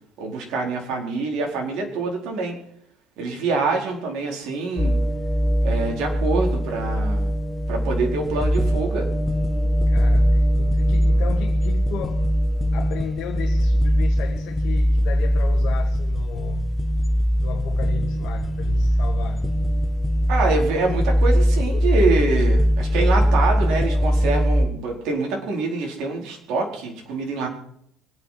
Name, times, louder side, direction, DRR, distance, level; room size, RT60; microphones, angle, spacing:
voice 1, 0.2-2.6 3.2-5.0 5.6-7.3 7.7-9.1 20.3-27.5, right 3 dB, 60° right, 4.6 m, -25 dB
sound 1, 4.8-24.7, equal, 5° left, 1.4 m, -21 dB
voice 2, 9.6-12.2 12.7-16.7 17.4-19.5, left 7 dB, 50° left, 2.0 m, -35 dB
24.0 x 9.4 x 5.9 m
cardioid pair, 170°, 0 cm